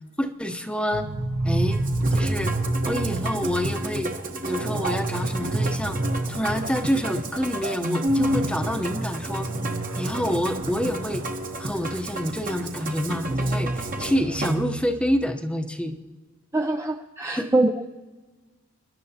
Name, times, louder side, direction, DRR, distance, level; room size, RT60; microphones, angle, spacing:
voice 1, 0.2-1.1 1.4-1.8 2.1-2.6 2.9-4.1 4.4-6.0 6.3-9.5 10.0-11.2 11.6-16.0 17.2-17.5, equal, 5° left, 4 dB, 0.8 m, -27 dB
sound 1, 0.9-7.4 7.7-7.8 8.1-12.7 13.2-14.8, right 2 dB, 75° right, 1.0 m, -29 dB
Musical instrument, 1.7-14.6, right 1 dB, 40° right, 1.1 m, -31 dB
voice 2, 16.5-17.9, right 2 dB, 15° right, 5 dB, 0.4 m, -23 dB
30.0 x 10.5 x 2.8 m, 1.2 s
head